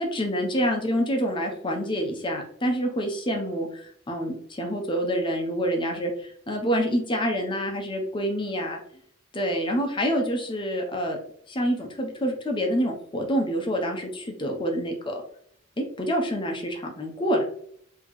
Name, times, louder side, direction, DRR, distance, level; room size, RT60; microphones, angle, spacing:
voice 1, 0.1-8.8 9.3-11.2 11.5-15.2 15.8-17.4, equal, 25° left, 2 dB, 0.8 m, -27 dB
4.2 x 2.9 x 3.1 m, 0.65 s
head